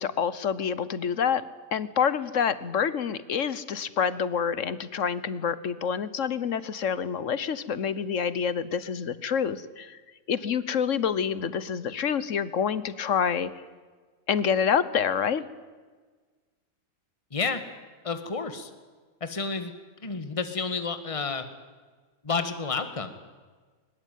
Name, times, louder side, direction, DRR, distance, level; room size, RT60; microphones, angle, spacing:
voice 1, 0.0-1.4 1.7-10.0 10.3-13.5 14.3-15.4, left 7 dB, 50° left, 16 dB, 1.3 m, -27 dB
voice 2, 17.3-17.6 18.0-18.7 19.2-19.7 20.0-21.4 22.2-23.1, left 4 dB, 20° left, 9 dB, 1.8 m, -30 dB
22.5 x 21.0 x 9.4 m, 1.4 s
omnidirectional pair, 1.8 m